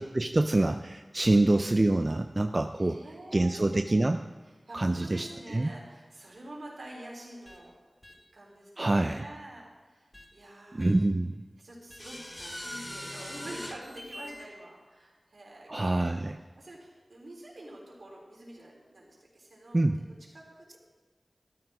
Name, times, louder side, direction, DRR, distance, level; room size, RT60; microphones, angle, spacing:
voice 1, 0.0-3.1 3.3-4.2 4.7-5.7 8.8-9.2 10.7-11.4 15.7-16.4 19.7-20.0, right 2 dB, 40° right, 7 dB, 0.5 m, -26 dB
voice 2, 2.8-4.1 4.7-7.7 8.3-10.8 11.6-20.8, right 1 dB, 80° right, -3 dB, 3.6 m, -47 dB
sound 1, 7.5-7.6 8.0-8.1 9.1-9.2 10.1-10.3 10.8-10.9 11.9-14.5, left 1 dB, 35° left, 1.6 m, -42 dB
14.5 x 12.5 x 3.6 m, 1.4 s
wide cardioid pair, 50°, 0 cm